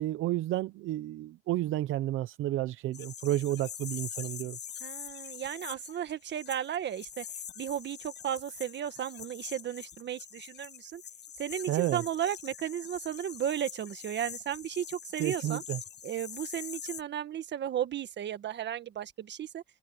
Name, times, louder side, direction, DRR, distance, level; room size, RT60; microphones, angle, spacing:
voice 1, 0.0-4.6 11.7-12.0 15.2-15.8, right 14 dB, 85° right, 0.7 m, -31 dB
sound 1, 2.9-17.0, left 8 dB, 60° left, 7.6 m, -44 dB
voice 2, 4.8-7.2 7.6-11.0 11.4-15.6 16.0-19.6, right 10 dB, 60° right, 1.5 m, -34 dB
cardioid pair, 90°, 20 cm